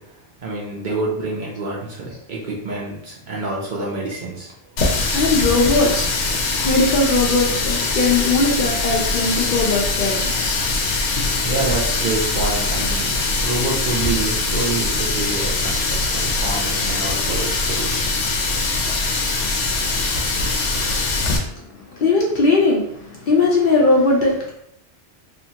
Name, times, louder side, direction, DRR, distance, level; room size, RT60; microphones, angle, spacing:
voice 1, 0.4-4.5 11.4-13.1 13.4-18.1, right 3 dB, 55° right, -4 dB, 0.6 m, -27 dB
Water tap faucet, 4.8-21.4, left 3 dB, 90° left, 0.9 m, -22 dB
voice 2, 5.1-6.1 6.6-10.3 11.2-11.3 21.0-24.5, left 3 dB, 60° left, -3 dB, 0.6 m, -19 dB
2.8 x 2.3 x 2.7 m, 0.75 s
omnidirectional pair, 1.2 m